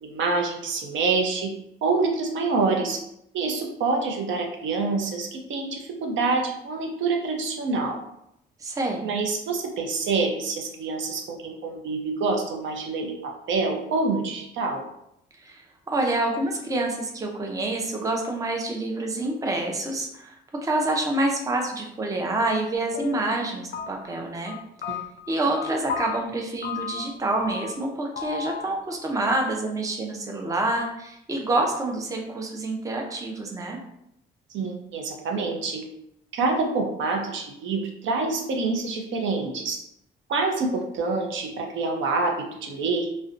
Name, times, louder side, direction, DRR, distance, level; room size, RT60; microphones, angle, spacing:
voice 1, 0.0-1.5 1.8-3.0 3.3-8.0 9.0-14.8 24.9-25.0 34.5-35.8 36.3-39.8 40.3-43.1, right 3 dB, 70° right, 2 dB, 0.6 m, -26 dB
voice 2, 8.6-9.1 15.4-20.4 20.6-24.6 24.9-25.0 25.3-33.8, right 2 dB, 15° right, 1 dB, 0.4 m, -27 dB
sound 1, 22.7-23.4 23.7-24.2 24.5-26.2 26.6-27.1 27.4-27.9 28.2-29.0 29.3-29.4, left 7 dB, 50° left, 0.4 m, -34 dB
2.5 x 2.1 x 2.4 m, 0.78 s
cardioid pair, 90°, 20 cm